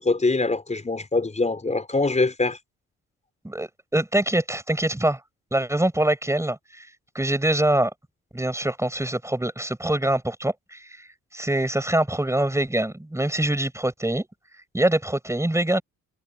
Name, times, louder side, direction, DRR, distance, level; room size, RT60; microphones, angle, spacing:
voice 1, 0.0-2.6, left 3 dB, 20° left, 5.4 m, -23 dB
voice 2, 3.4-5.2 5.5-6.9 7.1-7.9 8.3-10.8 11.3-14.3 14.7-15.8, right 1 dB, 10° right, 7.6 m, -24 dB
supercardioid pair, 75°, 32 cm